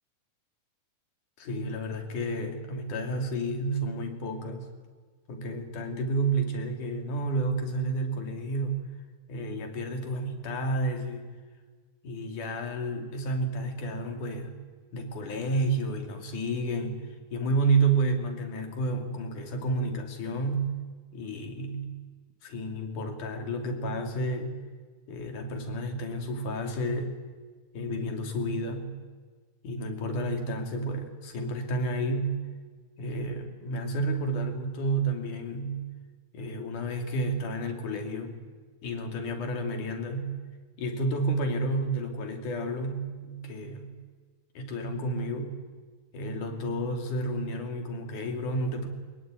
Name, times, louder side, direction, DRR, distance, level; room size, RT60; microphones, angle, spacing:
voice 1, 1.4-4.7 5.3-8.8 9.3-11.3 12.0-14.5 14.9-20.7 21.1-22.0 22.4-24.6 25.1-27.2 27.7-29.0 29.6-32.4 33.0-35.9 36.3-38.4 38.8-40.4 40.8-43.9 44.6-45.6 46.1-48.9, right 2 dB, 85° left, 4 dB, 4.2 m, -31 dB
23.5 x 21.0 x 9.2 m, 1.5 s
omnidirectional pair, 3.5 m